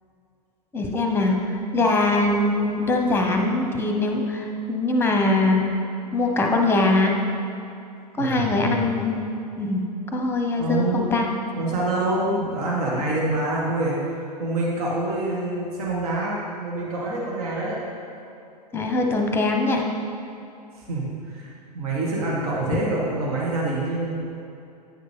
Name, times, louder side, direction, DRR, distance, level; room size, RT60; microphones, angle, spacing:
voice 1, 0.7-5.6 6.1-7.1 8.2-9.3 9.6-9.8 10.1-11.3 18.7-19.8, left 2 dB, 10° left, 2 dB, 1.0 m, -22 dB
voice 2, 8.2-8.9 10.6-11.2 11.6-13.9 14.4-17.8 20.7-24.2, right 2 dB, 60° right, -4 dB, 1.8 m, -26 dB
10.0 x 6.6 x 3.5 m, 2.7 s
hypercardioid pair, 100°, 21 cm